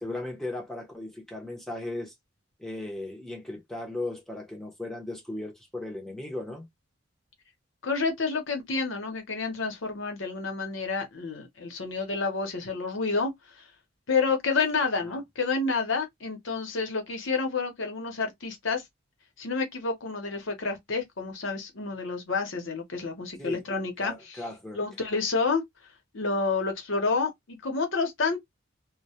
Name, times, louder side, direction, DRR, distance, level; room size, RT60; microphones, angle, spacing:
voice 1, 0.0-2.1 2.6-6.7 15.1-15.2 23.4-23.6 24.0-24.8, left 2 dB, ahead, 0.7 m, -36 dB
voice 2, 7.8-13.3 14.1-18.8 19.4-24.4 24.7-25.6 26.1-28.4, left 4 dB, 60° left, 0.9 m, -29 dB
2.2 x 2.2 x 2.8 m
head